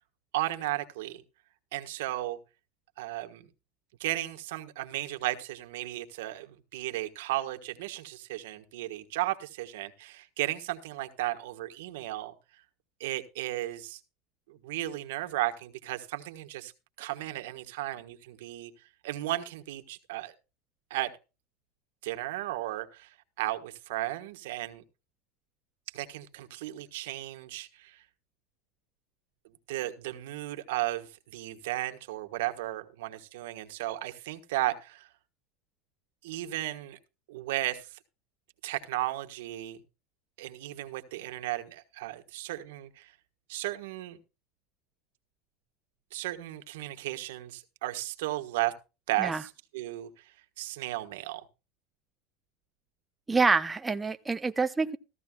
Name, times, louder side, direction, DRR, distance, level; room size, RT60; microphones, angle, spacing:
voice 1, 0.3-1.2 1.7-2.4 3.0-3.5 4.0-12.3 13.0-14.0 14.5-16.7 17.0-18.7 19.0-20.3 20.9-21.1 22.0-24.8 25.9-28.0 29.7-35.1 36.2-37.0 37.3-38.0 38.6-39.8 40.4-43.1 43.5-44.2 46.1-48.7 49.1-50.3 50.6-51.4, right 16 dB, 90° right, 1.4 m, -35 dB
voice 2, 53.3-55.0, right 4 dB, 10° right, 0.6 m, -26 dB
15.0 x 14.0 x 2.3 m
supercardioid pair, 150°, 0 cm